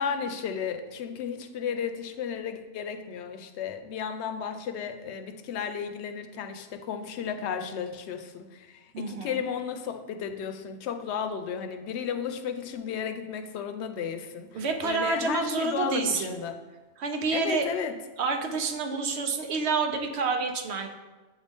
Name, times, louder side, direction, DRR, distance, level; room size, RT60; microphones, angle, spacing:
voice 1, 0.0-16.6 17.3-17.9, left 7 dB, 85° left, 8 dB, 0.9 m, -34 dB
voice 2, 8.9-9.4 14.5-16.4 17.0-17.8 18.2-20.9, right 4 dB, 75° right, 5 dB, 1.0 m, -28 dB
7.8 x 4.0 x 3.5 m, 1.2 s
omnidirectional pair, 1.1 m